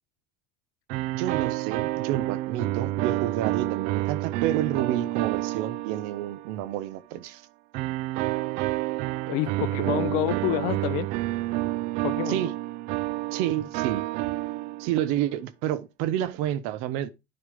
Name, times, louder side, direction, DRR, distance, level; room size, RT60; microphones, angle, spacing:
sound 1, 0.9-6.7 7.7-15.1, right 17 dB, 65° right, 0.4 m, -29 dB
voice 1, 1.1-7.4 9.8-10.2 12.3-12.5 13.3-14.1 14.8-17.1, right 12 dB, 90° right, 0.9 m, -29 dB
voice 2, 9.3-11.1 12.0-12.4, left 18 dB, 80° left, 0.6 m, -28 dB
11.5 x 4.2 x 5.0 m
cardioid pair, 170°, 12 cm